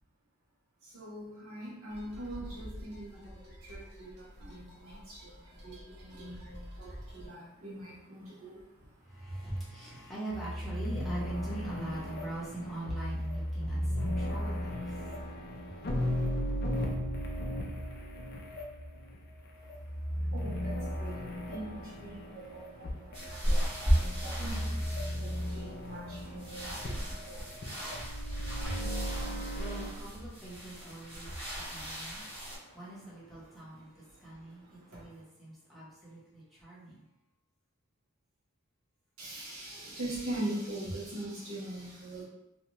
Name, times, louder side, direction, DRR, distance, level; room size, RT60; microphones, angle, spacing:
voice 1, 0.8-8.9 19.6-19.7 20.3-28.8 29.2-29.6 31.6-32.8 34.2-35.0 39.2-42.2, right 1 dB, 80° right, -7 dB, 1.1 m, -43 dB
sound 1, 1.9-7.3, equal, 55° right, 0.7 m, -48 dB
voice 2, 9.0-15.1 28.6-28.9 29.2-31.3 31.7-32.2 32.5-37.0, right 1 dB, ahead, -10 dB, 0.8 m, -43 dB
sound 2, 10.3-29.9, equal, 45° left, 0.4 m, -36 dB
sound 3, 23.1-32.6, equal, 25° right, 1.1 m, -35 dB
2.7 x 2.3 x 3.0 m, 0.89 s
head